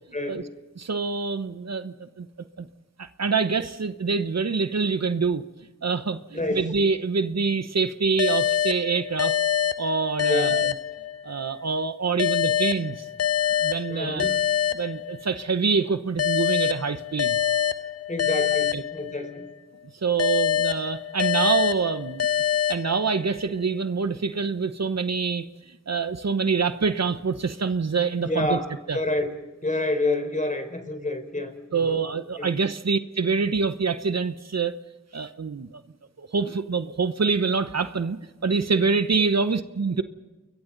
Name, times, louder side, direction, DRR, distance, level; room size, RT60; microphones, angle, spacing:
voice 1, 0.1-0.5 6.3-6.7 10.3-10.6 13.9-14.3 18.1-19.5 28.2-28.7 28.9-32.0 32.4-32.5, left 2 dB, 25° left, 7 dB, 4.2 m, -28 dB
voice 2, 0.8-2.3 2.6-2.7 3.0-5.5 5.8-9.4 9.8-10.7 11.2-13.1 13.6-14.3 14.7-17.4 18.7-18.8 19.9-22.3 22.7-28.6 28.9-29.0 31.7-34.8 35.1-35.8 36.2-40.0, right 5 dB, 65° right, 11 dB, 1.0 m, -26 dB
sound 1, 8.2-11.5 12.2-15.5 16.2-19.5 20.2-23.5, left 10 dB, 60° left, 0.6 m, -26 dB
29.5 x 22.5 x 4.0 m, 1.2 s
wide cardioid pair, 50°, 29 cm